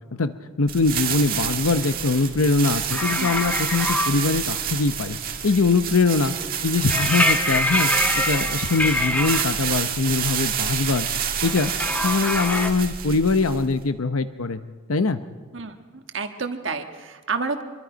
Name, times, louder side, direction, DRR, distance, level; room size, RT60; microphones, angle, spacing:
voice 1, 0.2-5.2 5.4-6.4 6.6-11.1 11.4-14.6 14.9-15.2, left 3 dB, 80° left, 11 dB, 0.8 m, -22 dB
sound 1, 0.7-13.8, right 8 dB, 40° right, 1.7 m, -28 dB
sound 2, 2.9-4.1 6.9-9.4 11.4-12.7, left 1 dB, 5° left, 0.9 m, -24 dB
voice 2, 15.5-17.6, right 4 dB, 55° right, 6 dB, 1.5 m, -30 dB
26.0 x 22.5 x 5.2 m, 1.4 s
head